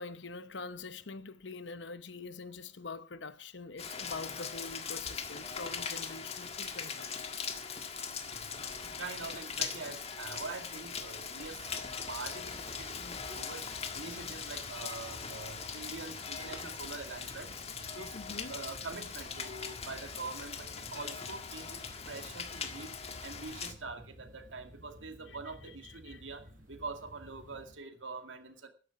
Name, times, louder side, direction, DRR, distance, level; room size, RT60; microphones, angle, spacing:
voice 1, 0.0-7.4 18.1-18.5 25.3-25.4 25.6-26.2, left 3 dB, 70° left, 0.9 m, -45 dB
Rain, 3.8-23.7, left 6 dB, 35° left, 1.7 m, -41 dB
voice 2, 7.9-8.6 9.0-11.8 12.1-17.5 17.9-18.2 18.5-21.8 22.1-22.9 23.2-28.7, right 3 dB, 85° right, 2.2 m, -44 dB
sound 1, 11.5-27.7, equal, 45° right, 5.5 m, -53 dB
13.0 x 11.0 x 5.9 m
head